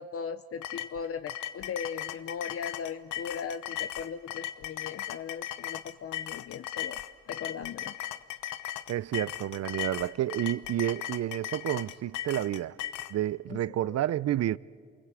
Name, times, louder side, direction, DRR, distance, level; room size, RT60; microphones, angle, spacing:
voice 1, 0.0-7.0 7.3-7.9 13.5-13.6 13.8-14.0, left 6 dB, 50° left, 0.8 m, -38 dB
sound 1, 0.6-13.1, left 13 dB, 85° left, 1.0 m, -37 dB
voice 2, 8.9-12.8 13.1-14.6, right 12 dB, 55° right, 0.6 m, -30 dB
28.5 x 21.0 x 8.3 m
cardioid pair, 90°, 30 cm